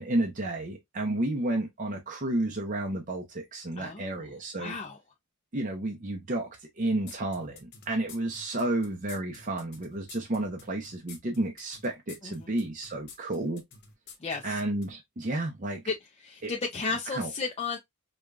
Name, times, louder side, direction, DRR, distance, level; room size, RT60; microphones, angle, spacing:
voice 1, 0.0-4.7 5.5-6.5 6.8-13.6 14.4-15.8 16.4-16.5 17.1-17.3, right 1 dB, 40° right, 0.7 m, -31 dB
voice 2, 3.8-4.3 4.6-5.0 12.2-12.5 14.2-14.6 15.9-16.0 16.2-17.8, left 4 dB, 30° left, 0.5 m, -34 dB
sound 1, 7.1-14.9, left 5 dB, 55° left, 0.9 m, -49 dB
5.0 x 2.3 x 2.4 m
head